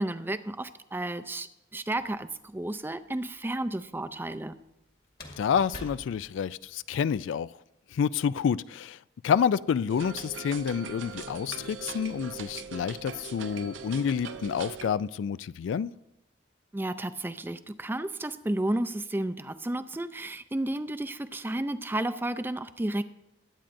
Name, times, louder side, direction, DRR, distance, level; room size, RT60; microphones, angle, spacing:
voice 1, 0.0-1.5 1.7-4.5 16.7-23.0, right 1 dB, 10° right, 0.4 m, -32 dB
sound 1, 2.0-2.6 5.1-7.1, left 1 dB, 55° left, 2.0 m, -46 dB
voice 2, 5.4-7.5 7.9-9.0 9.2-15.9, left 7 dB, 80° left, 0.3 m, -28 dB
sound 2, 9.9-14.9, right 5 dB, 80° right, 0.6 m, -41 dB
21.5 x 8.9 x 2.6 m
head